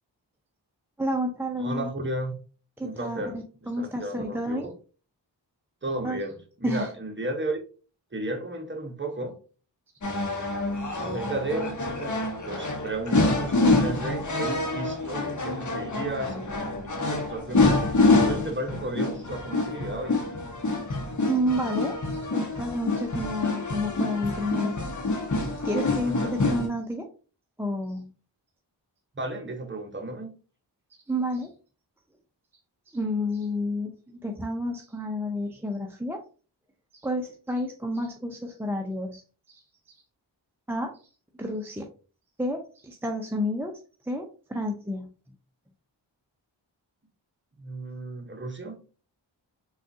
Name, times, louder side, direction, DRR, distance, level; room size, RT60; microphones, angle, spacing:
voice 1, 1.0-1.9 2.8-4.7 6.0-6.2 6.6-6.9 21.2-24.8 25.6-27.1 27.6-28.1 31.1-31.5 32.9-36.2 37.0-39.2 39.5-39.6 40.7-40.9 41.4-41.9 42.4-43.8 44.0-45.1, equal, 5° right, 0.5 m, -30 dB
voice 2, 1.6-2.3 2.8-3.4 3.8-4.7 5.8-7.6 8.1-9.4 11.0-17.8 18.2-20.2 26.0-26.4 29.1-30.3 47.6-48.8, right 2 dB, 25° right, 0.9 m, -34 dB
sound 1, 10.0-26.7, left 2 dB, 40° left, 0.9 m, -26 dB
3.5 x 2.4 x 2.6 m
cardioid pair, 40°, 45 cm